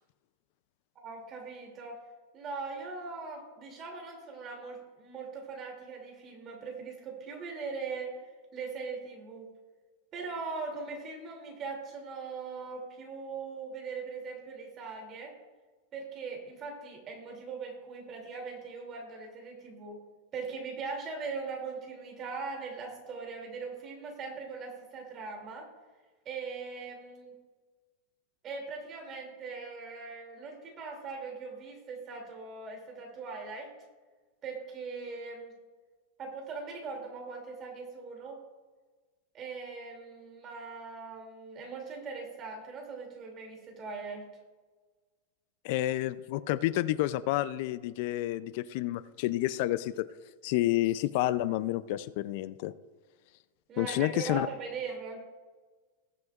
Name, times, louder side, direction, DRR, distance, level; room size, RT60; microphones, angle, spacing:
voice 1, 1.0-2.0 2.3-9.5 10.1-15.3 15.9-20.0 20.3-25.7 26.2-27.3 28.4-33.7 34.4-35.5 36.2-38.4 39.3-44.2 53.7-55.2, right 4 dB, 25° right, 1 dB, 2.6 m, -40 dB
voice 2, 45.6-50.1 50.4-52.7 53.8-54.5, left 15 dB, 50° left, 16 dB, 0.4 m, -29 dB
19.5 x 7.9 x 2.4 m, 1.3 s
supercardioid pair, 165°, 0 cm